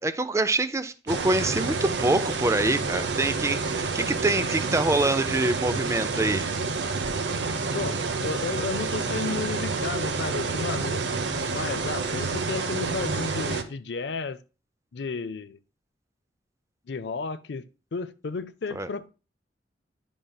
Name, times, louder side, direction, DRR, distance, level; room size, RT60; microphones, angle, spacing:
voice 1, 0.0-6.5 18.8-18.9, right 2 dB, 15° right, 0.5 m, -25 dB
sound 1, 1.1-13.6, right 4 dB, 75° right, 0.7 m, -29 dB
voice 2, 7.7-11.2 11.5-14.4 14.9-15.6 16.9-17.6 17.9-19.1, left 4 dB, 70° left, 0.5 m, -33 dB
10.0 x 5.4 x 2.3 m
head